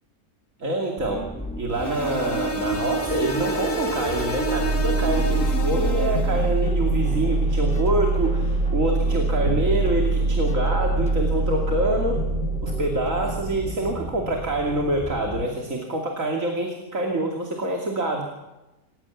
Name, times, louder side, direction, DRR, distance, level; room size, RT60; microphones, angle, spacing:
voice 1, 0.6-1.3 1.6-12.3 12.6-18.2, right 2 dB, 55° right, 2 dB, 3.1 m, -26 dB
sound 1, 1.0-15.4, equal, 5° left, 2.6 m, -36 dB
sound 2, 1.7-6.5, right 1 dB, 60° left, 3.5 m, -29 dB
sound 3, 4.2-16.2, right 2 dB, 75° right, 5.2 m, -25 dB
27.5 x 16.0 x 7.2 m, 1.0 s
omnidirectional pair, 1.6 m